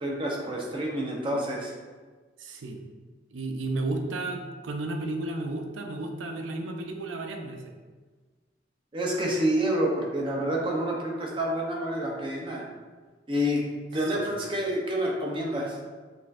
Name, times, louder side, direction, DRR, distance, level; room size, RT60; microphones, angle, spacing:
voice 1, 0.0-1.8 8.9-12.7 13.3-13.6 13.9-15.8, equal, 25° right, -1 dB, 0.6 m, -28 dB
voice 2, 2.4-2.8 3.3-7.6 14.2-14.4, right 2 dB, 85° right, 4 dB, 0.5 m, -33 dB
6.0 x 2.6 x 2.4 m, 1.4 s
head